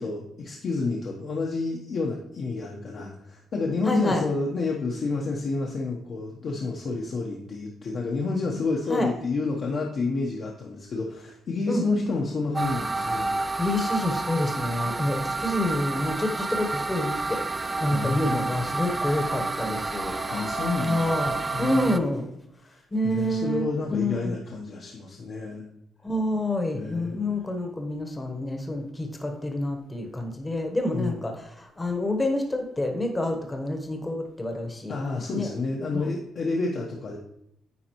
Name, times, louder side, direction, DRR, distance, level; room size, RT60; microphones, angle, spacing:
voice 1, 0.0-13.3 17.9-18.5 20.3-22.0 22.6-25.7 26.7-27.2 30.9-31.2 34.9-37.2, left 3 dB, 55° left, -1 dB, 0.9 m, -29 dB
voice 2, 3.9-4.2 8.9-9.1 11.7-11.8 13.6-17.4 17.8-20.1 20.8-22.3 22.9-24.4 26.0-34.9 35.3-35.5 35.9-36.0, left 1 dB, 20° left, 4 dB, 1.0 m, -28 dB
sound 1, 12.5-22.0, right 3 dB, 25° right, 0.4 m, -30 dB
9.7 x 4.0 x 3.0 m, 0.75 s
cardioid pair, 90°, 0 cm